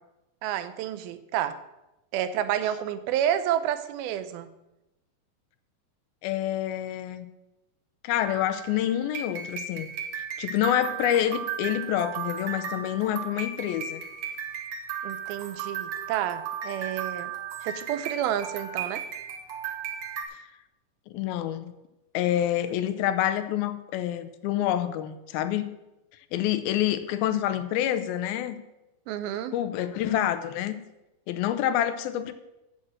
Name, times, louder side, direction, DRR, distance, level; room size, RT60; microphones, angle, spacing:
voice 1, 0.4-1.6 2.1-4.5 15.0-17.3 17.6-19.0 29.1-29.6, right 11 dB, 90° right, 11 dB, 2.5 m, -29 dB
voice 2, 6.2-7.3 8.0-14.0 20.3-20.4 21.1-21.7 22.1-25.7 26.3-28.6 29.5-30.8 31.3-32.3, left 11 dB, 80° left, 11 dB, 2.5 m, -27 dB
sound 1, 8.2-20.2, right 7 dB, 60° right, 1.8 m, -35 dB
9.1 x 7.4 x 7.6 m, 0.96 s
omnidirectional pair, 4.3 m